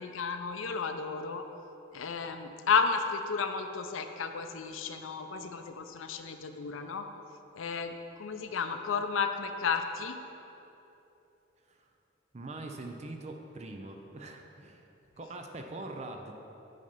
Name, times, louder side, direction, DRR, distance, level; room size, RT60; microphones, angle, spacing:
voice 1, 0.0-1.5 1.9-7.1 7.5-7.9 8.2-10.2, left 5 dB, 85° left, 7 dB, 0.5 m, -32 dB
voice 2, 12.3-16.3, right 2 dB, 35° right, 3 dB, 0.5 m, -43 dB
8.5 x 4.1 x 5.2 m, 2.9 s
head